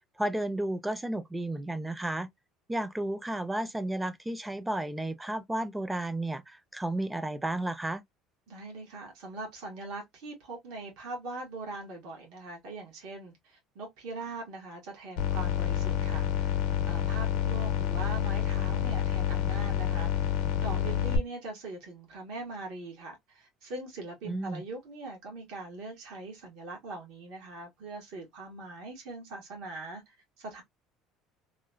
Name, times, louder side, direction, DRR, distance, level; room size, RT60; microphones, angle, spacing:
voice 1, 0.2-2.3 2.7-8.0 24.2-24.6, right 1 dB, 10° right, 0.4 m, -32 dB
voice 2, 8.5-16.6 16.9-30.6, right 2 dB, 75° right, 1.2 m, -42 dB
sound 1, 15.2-21.2, left 10 dB, 85° left, 0.6 m, -28 dB
3.0 x 2.1 x 2.3 m
supercardioid pair, 110°, 0 cm